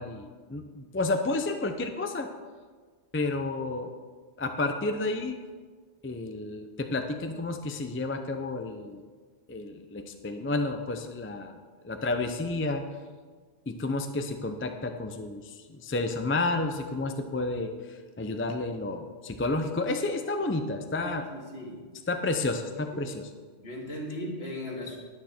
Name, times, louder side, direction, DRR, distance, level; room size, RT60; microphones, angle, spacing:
voice 1, 0.0-2.3 3.1-3.9 4.4-5.4 6.0-9.1 9.5-11.5 11.8-12.8 13.7-21.2 22.1-23.3, left 2 dB, 15° left, 6 dB, 0.4 m, -31 dB
voice 2, 21.3-21.8 23.6-25.0, left 1 dB, 60° left, -2 dB, 2.4 m, -37 dB
10.0 x 9.6 x 4.4 m, 1.5 s
omnidirectional pair, 1.2 m